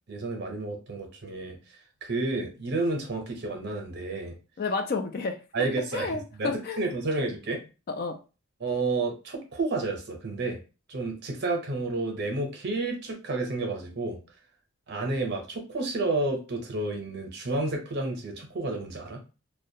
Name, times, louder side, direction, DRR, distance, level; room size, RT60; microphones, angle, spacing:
voice 1, 0.1-1.6 2.0-4.3 5.5-6.5 6.8-7.6 8.6-10.6 10.9-14.2 14.9-19.2, right 2 dB, 50° right, 3 dB, 0.7 m, -30 dB
voice 2, 4.6-7.1 7.9-8.2, left 4 dB, 45° left, 6 dB, 0.3 m, -32 dB
2.3 x 2.1 x 2.7 m, 0.32 s
head